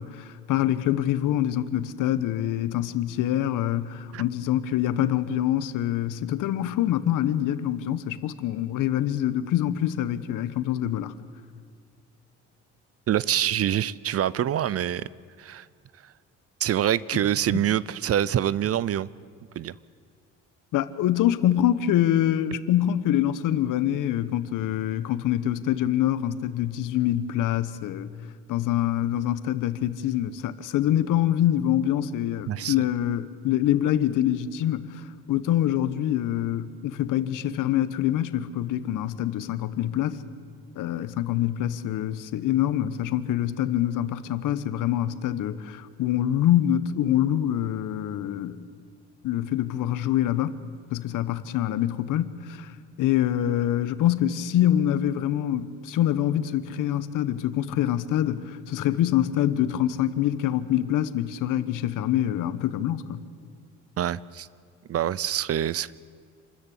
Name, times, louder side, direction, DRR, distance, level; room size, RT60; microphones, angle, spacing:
voice 1, 0.0-11.1 17.5-17.6 20.7-28.1 28.5-34.8 35.3-40.2 40.8-48.7 49.2-50.6 50.9-52.7 53.0-63.2, left 12 dB, 75° left, 1.1 m, -25 dB
voice 2, 13.1-15.1 15.4-15.7 16.6-19.1 19.6-19.7 32.5-32.7 64.0-64.5 64.9-66.0, right 11 dB, 50° right, 0.6 m, -25 dB
27.5 x 13.5 x 8.5 m
cardioid pair, 80°, 32 cm